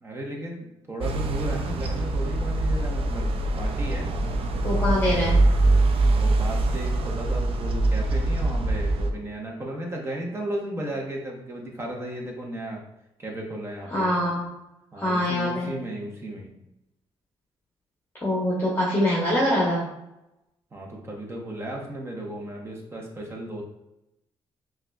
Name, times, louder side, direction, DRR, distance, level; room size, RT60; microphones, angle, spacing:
voice 1, 0.0-3.3 3.6-4.1 6.1-12.8 13.2-14.1 14.9-16.5 20.7-23.6, right 1 dB, 25° right, -1 dB, 0.9 m, -35 dB
sound 1, 1.0-9.1, right 2 dB, 65° right, 0.4 m, -23 dB
voice 2, 4.6-5.4 13.9-14.5 14.9-15.7 18.2-19.8, left 1 dB, 20° left, -6 dB, 1.0 m, -24 dB
5.5 x 2.4 x 2.2 m, 0.87 s
cardioid pair, 100°, 10 cm